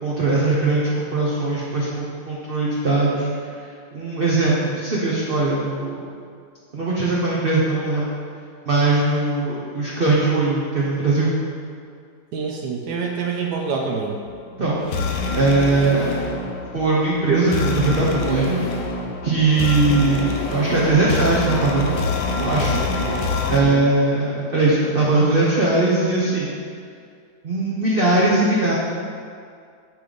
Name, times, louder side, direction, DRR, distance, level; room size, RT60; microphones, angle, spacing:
voice 1, 0.0-3.3 3.9-6.1 6.7-8.1 8.6-11.3 14.6-14.8 15.3-16.2 16.7-18.6 19.2-22.0 22.4-22.7 23.2-26.6 27.4-28.8, right 2 dB, 45° right, -5 dB, 0.8 m, -20 dB
voice 2, 12.3-14.2 22.5-23.2 23.6-23.8, right 5 dB, 70° right, 0 dB, 1.2 m, -27 dB
sound 1, 14.3-23.6, left 3 dB, 85° left, 1.4 m, -26 dB
10.0 x 3.4 x 3.9 m, 2.2 s
omnidirectional pair, 1.9 m